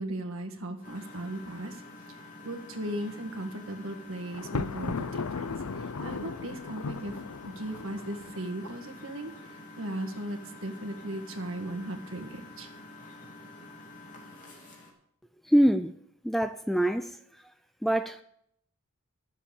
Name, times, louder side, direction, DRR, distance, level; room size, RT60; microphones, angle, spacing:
voice 1, 0.0-1.8 2.1-2.2 2.4-7.1 7.4-9.3 9.8-12.7, right 1 dB, 65° right, 4 dB, 1.8 m, -37 dB
Engine, 0.8-14.9, left 2 dB, 35° left, 2.9 m, -48 dB
Thunder, 4.3-8.5, left 4 dB, 90° left, 0.6 m, -36 dB
voice 2, 15.4-15.9 16.2-17.2 17.8-18.2, equal, ahead, 10 dB, 0.3 m, -24 dB
12.5 x 7.2 x 7.1 m, 0.72 s
head